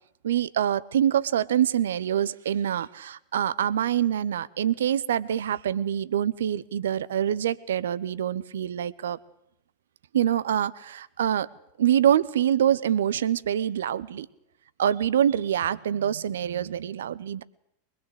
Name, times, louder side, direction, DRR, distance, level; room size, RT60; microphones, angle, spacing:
voice 1, 0.2-9.2 10.1-11.5 11.8-14.3 14.8-17.4, right 10 dB, 60° right, 18 dB, 1.0 m, -25 dB
23.5 x 21.0 x 8.0 m, 0.77 s
figure-of-eight pair, 90°, 0 cm